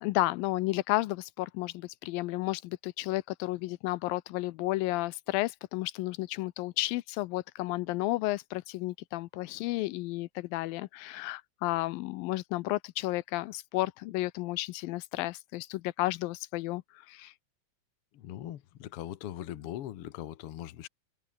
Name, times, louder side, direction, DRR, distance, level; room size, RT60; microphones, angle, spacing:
voice 1, 0.0-16.8 17.1-17.3, left 19 dB, 85° left, 2.4 m, -32 dB
voice 2, 18.1-20.9, left 12 dB, 60° left, 1.5 m, -40 dB
omnidirectional pair, 4.0 m